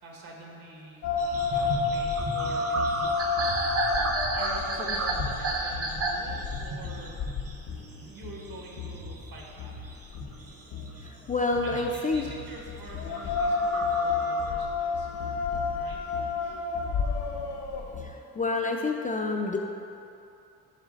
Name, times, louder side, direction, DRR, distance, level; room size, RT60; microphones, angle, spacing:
voice 1, 0.0-1.2 1.5-3.2 4.3-7.2 8.0-10.0 11.6-15.1 15.7-16.0, right 2 dB, 65° right, -2 dB, 1.4 m, -46 dB
sound 1, 1.0-18.1, left 4 dB, 85° left, 0.8 m, -31 dB
sound 2, 1.2-11.1 11.5-12.5 13.0-14.5, right 2 dB, 40° right, 0.7 m, -33 dB
voice 2, 11.0-12.2 18.0-19.6, left 3 dB, 20° left, 1 dB, 0.3 m, -29 dB
7.4 x 3.2 x 5.0 m, 2.7 s
cardioid pair, 90°, 38 cm